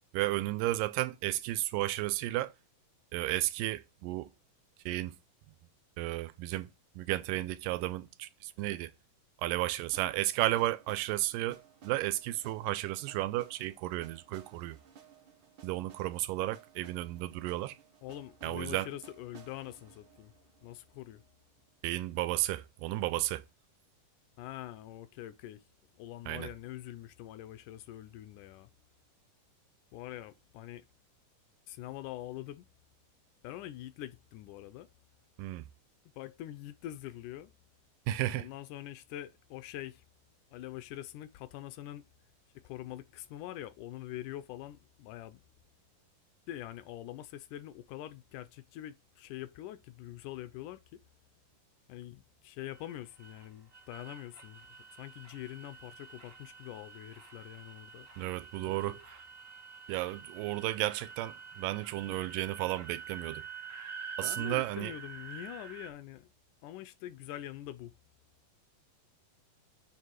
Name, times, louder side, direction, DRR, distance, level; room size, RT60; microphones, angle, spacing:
voice 1, 0.1-2.5 3.1-4.3 4.9-5.1 6.0-6.7 7.0-8.9 9.4-14.8 15.6-17.8 18.4-18.9 21.8-23.4 26.3-26.5 35.4-35.7 38.1-38.5 58.2-59.2 59.9-63.4 64.2-64.9, right 16 dB, 90° right, 2.2 m, -33 dB
sound 1, 9.9-21.8, right 8 dB, 70° right, 1.0 m, -59 dB
voice 2, 18.0-20.3 20.6-21.2 24.4-25.6 26.0-28.7 29.9-30.8 31.7-32.7 33.4-34.9 36.2-37.5 38.3-40.0 40.5-42.0 42.6-45.4 46.5-51.0 51.9-54.7 54.9-58.1 58.9-59.0 64.2-66.3 66.6-67.9, left 13 dB, 80° left, 2.0 m, -44 dB
sound 2, 52.7-65.9, right 6 dB, 55° right, 0.6 m, -47 dB
7.3 x 3.3 x 6.2 m
omnidirectional pair, 3.8 m